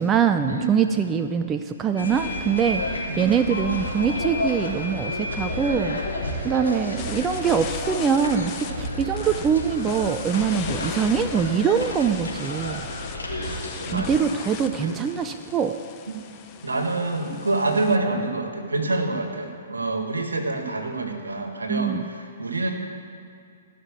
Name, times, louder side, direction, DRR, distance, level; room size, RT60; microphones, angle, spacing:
voice 1, 0.0-6.0 6.4-12.8 13.9-15.7 21.7-22.1, right 7 dB, 20° right, 7 dB, 0.5 m, -23 dB
sound 1, 2.0-14.1, left 1 dB, 75° left, 3.4 m, -31 dB
sound 2, 7.0-18.0, left 8 dB, 30° left, 1.0 m, -38 dB
voice 2, 13.9-14.2 14.8-15.0 16.1-16.2 16.6-22.7, right 2 dB, 80° right, 4 dB, 1.8 m, -27 dB
16.0 x 6.1 x 8.3 m, 2.4 s
figure-of-eight pair, 120°, 0 cm